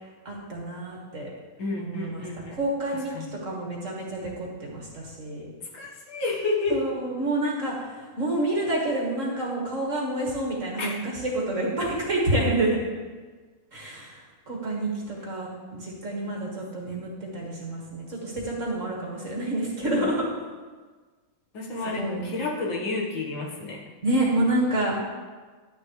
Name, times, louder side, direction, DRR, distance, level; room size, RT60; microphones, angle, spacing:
voice 1, 0.3-1.3 1.8-2.3 2.5-5.5 6.7-7.9 8.2-12.8 13.7-14.2 14.5-20.2 22.0-22.3 24.0-25.0, right 1 dB, 40° right, -3 dB, 1.9 m, -28 dB
voice 2, 1.6-2.5 3.1-3.3 5.7-6.8 10.8-11.0 11.8-11.9 16.2-16.5 19.8-20.1 21.5-23.8, left 3 dB, 65° left, -2 dB, 2.2 m, -30 dB
11.5 x 9.6 x 3.2 m, 1.4 s
omnidirectional pair, 2.3 m